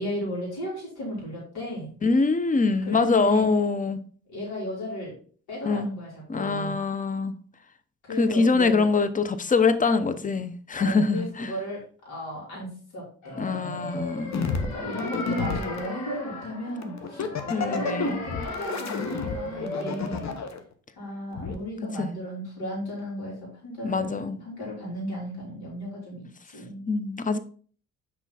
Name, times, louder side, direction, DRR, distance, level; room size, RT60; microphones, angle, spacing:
voice 1, 0.0-1.9 2.6-3.5 4.3-5.1 5.5-6.8 8.1-8.9 10.8-14.0 14.6-17.2 17.5-20.4 21.0-26.2 26.5-26.8, equal, 65° left, -5 dB, 3.4 m, -35 dB
voice 2, 2.0-4.0 5.6-5.9 6.3-7.3 8.2-11.5 13.4-14.4 17.5-18.2 22.0-22.1 23.8-24.4 26.9-27.4, left 4 dB, 20° left, 11 dB, 0.7 m, -24 dB
sound 1, 13.2-20.3, left 2 dB, 85° left, 1.7 m, -37 dB
sound 2, 14.3-15.9 16.8-20.6 21.4-21.5, left 5 dB, 45° left, 1.0 m, -31 dB
6.0 x 4.5 x 4.0 m, 0.44 s
hypercardioid pair, 45°, 40 cm